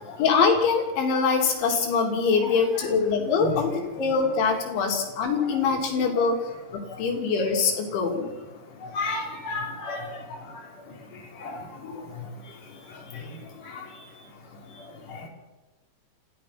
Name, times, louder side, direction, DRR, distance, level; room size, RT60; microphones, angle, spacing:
voice 1, 0.2-6.4 6.7-8.3, left 5 dB, 85° left, 2 dB, 5.4 m, -23 dB
voice 2, 2.4-2.9 3.4-3.5 6.2-6.3 8.9-10.0 11.4-11.6, left 2 dB, 45° left, -1 dB, 5.6 m, -32 dB
29.0 x 15.5 x 6.0 m, 1.2 s
omnidirectional pair, 5.2 m